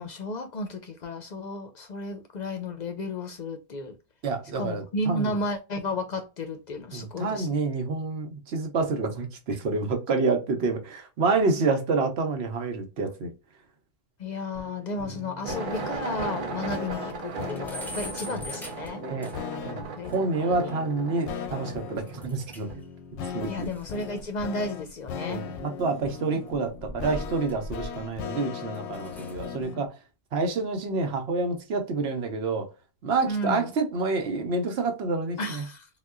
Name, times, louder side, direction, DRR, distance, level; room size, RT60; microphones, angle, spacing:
voice 1, 0.0-4.0 4.6-7.6 14.2-19.0 20.0-20.1 20.4-20.8 23.5-25.4 33.3-33.7 35.4-35.9, left 2 dB, 50° left, 0.6 m, -33 dB
voice 2, 4.2-5.4 6.9-13.3 18.2-18.4 19.0-19.3 19.6-22.8 23.3-23.7 25.3-29.9 30.3-32.7 33.0-35.6, right 3 dB, 75° right, 1.0 m, -28 dB
sound 1, 14.5-29.9, left 7 dB, 90° left, 0.9 m, -39 dB
sound 2, 15.3-15.4 15.8-15.9 16.2-16.3 16.6-16.7 17.1-19.6 20.1-20.2 22.1-22.8 23.1-25.8 26.6-28.2 28.6-29.5, equal, 5° left, 0.4 m, -43 dB
sound 3, 15.4-22.8, right 4 dB, 55° right, 0.7 m, -37 dB
4.0 x 2.2 x 2.3 m
omnidirectional pair, 1.1 m